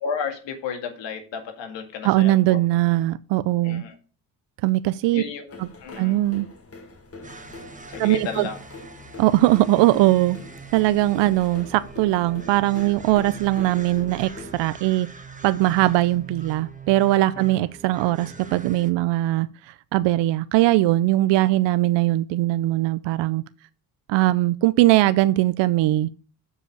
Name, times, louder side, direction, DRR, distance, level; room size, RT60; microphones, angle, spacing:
voice 1, 0.0-2.6 3.6-4.0 5.1-6.2 7.9-8.6, left 6 dB, 80° left, 2.1 m, -33 dB
voice 2, 2.0-3.8 4.6-5.2 5.6-5.7 6.0-6.5 8.0-8.5 9.2-10.4 10.7-15.1 15.4-23.4 24.1-26.1, right 16 dB, 75° right, 0.6 m, -20 dB
sound 1, 5.5-14.7, left 2 dB, 30° left, 1.9 m, -43 dB
sound 2, 7.2-18.9, right 4 dB, 15° right, 1.3 m, -42 dB
6.9 x 5.0 x 6.5 m
supercardioid pair, 70°, 43 cm